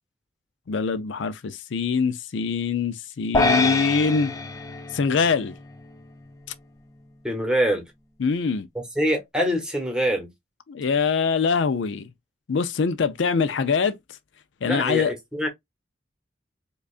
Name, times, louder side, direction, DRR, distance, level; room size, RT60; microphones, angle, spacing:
voice 1, 0.7-4.3 4.9-5.5 8.2-8.7 10.7-12.1 12.5-14.0 14.6-15.1, left 5 dB, 75° left, 0.5 m, -23 dB
sound 1, 3.3-5.8, left 2 dB, 15° left, 0.3 m, -25 dB
voice 2, 7.2-7.8 9.0-10.3 14.6-15.5, equal, 5° right, 1.1 m, -24 dB
5.0 x 2.3 x 2.4 m
head